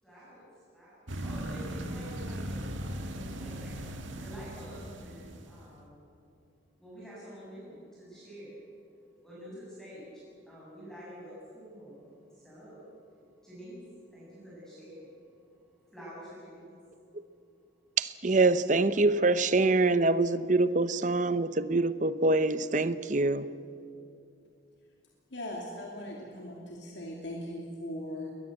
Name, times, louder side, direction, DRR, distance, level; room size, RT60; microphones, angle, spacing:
voice 1, 0.0-3.7 4.2-6.0 6.8-8.6 9.2-10.1 10.5-16.7, equal, 5° left, 7.6 m, -48 dB
sound 1, 1.1-5.6, right 1 dB, 80° right, 1.7 m, -38 dB
voice 2, 18.0-23.5, right 3 dB, 40° right, 0.7 m, -25 dB
voice 3, 25.3-28.3, left 1 dB, 70° left, 2.8 m, -39 dB
21.5 x 20.5 x 8.0 m
head